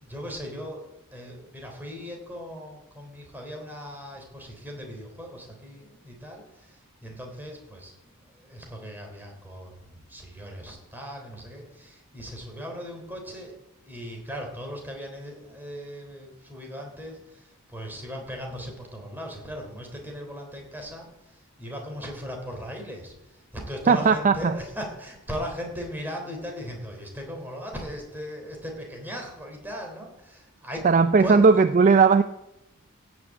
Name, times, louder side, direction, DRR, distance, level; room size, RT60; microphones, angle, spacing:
voice 1, 0.0-7.9 8.3-13.5 13.9-30.9 31.2-31.4, equal, 10° right, 1 dB, 3.4 m, -38 dB
voice 2, 23.9-24.5 30.8-32.2, right 4 dB, 35° right, 11 dB, 0.4 m, -17 dB
16.5 x 6.2 x 8.2 m, 0.89 s
head